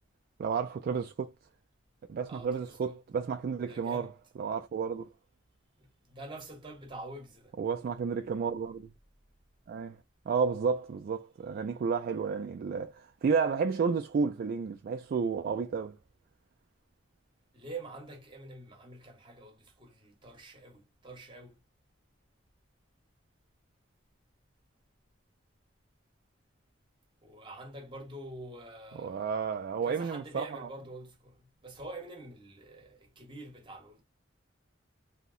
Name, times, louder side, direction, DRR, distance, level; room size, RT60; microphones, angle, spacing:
voice 1, 0.4-1.3 2.1-5.1 7.6-8.9 9.7-10.0 10.3-16.0 28.9-30.7, right 5 dB, 50° right, 0.3 m, -31 dB
voice 2, 2.3-3.0 3.7-4.1 5.8-7.6 17.5-21.6 27.2-29.4 29.8-34.0, right 2 dB, 25° right, 1.0 m, -46 dB
2.8 x 2.0 x 3.7 m
head